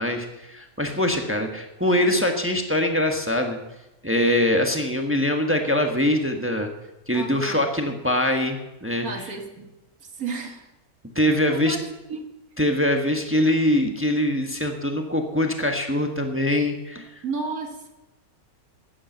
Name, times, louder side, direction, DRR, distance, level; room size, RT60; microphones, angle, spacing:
voice 1, 0.0-3.6 4.0-6.7 7.1-9.1 11.1-11.8 12.6-17.1, left 1 dB, 10° right, 4 dB, 1.2 m, -23 dB
voice 2, 7.1-7.6 9.0-9.7 10.0-10.7 11.4-11.8 12.1-12.3 17.2-17.9, right 4 dB, 75° right, 4 dB, 2.1 m, -32 dB
12.0 x 8.8 x 7.8 m, 0.97 s
omnidirectional pair, 1.6 m